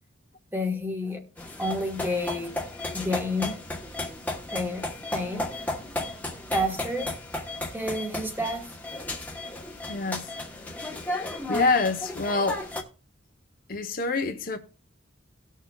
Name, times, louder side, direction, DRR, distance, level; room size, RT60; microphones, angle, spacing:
voice 1, 0.5-1.2 1.6-2.6 2.9-3.6 4.5-4.8 5.1-5.5 6.5-7.1 7.7-8.7, left 1 dB, 10° right, 1.3 m, -29 dB
sound 1, 1.4-12.8, left 1 dB, 10° left, 1.1 m, -34 dB
voice 2, 9.9-10.3 11.1-12.7 13.7-14.6, left 3 dB, 45° left, 0.8 m, -27 dB
18.5 x 6.5 x 2.3 m
head